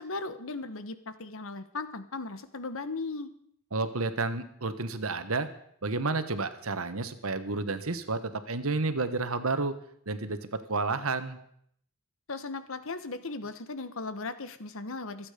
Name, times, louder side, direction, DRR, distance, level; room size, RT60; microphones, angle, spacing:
voice 1, 0.0-3.3 12.3-15.3, left 3 dB, 65° left, 12 dB, 1.2 m, -37 dB
voice 2, 3.7-5.5 5.8-9.7 10.1-11.4, right 3 dB, 70° right, 10 dB, 1.3 m, -31 dB
26.0 x 8.8 x 5.1 m, 0.68 s
head